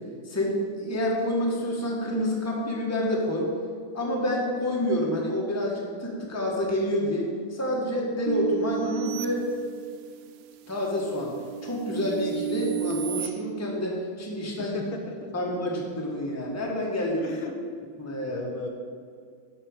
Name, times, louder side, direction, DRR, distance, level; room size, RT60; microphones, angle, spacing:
voice 1, 0.2-3.5 3.9-9.4 10.7-11.3 11.6-14.8 15.3-17.4 18.0-18.4, left 1 dB, 10° left, -3 dB, 1.3 m, -28 dB
sound 1, 8.3-10.2 10.7-13.3, right 12 dB, 80° right, 0.9 m, -33 dB
voice 2, 14.6-15.3 17.2-17.6 18.3-18.7, left 3 dB, 70° left, 3 dB, 1.7 m, -36 dB
11.0 x 4.7 x 7.3 m, 2.2 s
omnidirectional pair, 2.4 m